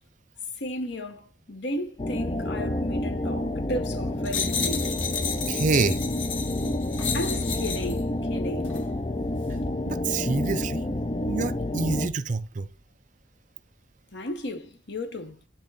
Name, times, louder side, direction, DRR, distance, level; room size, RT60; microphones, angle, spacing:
voice 1, 0.6-5.0 7.1-8.8 14.1-15.4, left 1 dB, 65° left, 1.1 m, -34 dB
sound 1, 2.0-12.1, left 1 dB, 25° left, 0.4 m, -29 dB
sound 2, 4.2-8.0 8.6-8.8, left 6 dB, 90° left, 1.5 m, -32 dB
voice 2, 5.5-6.0 9.8-10.9 11.3-12.7, right 4 dB, 40° right, 0.5 m, -27 dB
10.0 x 3.7 x 4.1 m
head